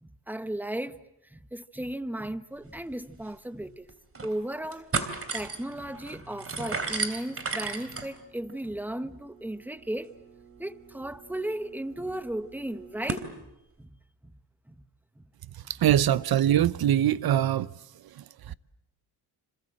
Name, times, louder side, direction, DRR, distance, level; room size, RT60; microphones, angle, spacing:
voice 1, 0.0-1.0 1.3-3.9 4.2-4.9 5.3-10.1 10.6-13.3 13.8-13.9 14.7-14.8 15.2-15.3 18.5-18.6, right 1 dB, 5° right, 1.2 m, -35 dB
sound 1, 2.9-3.0 3.3-3.4 3.9-4.3 4.6-13.3, right 4 dB, 30° right, 3.1 m, -37 dB
voice 2, 15.8-17.7 18.2-18.5, right 11 dB, 55° right, 0.9 m, -23 dB
27.5 x 27.0 x 7.8 m
cardioid pair, 90°, 44 cm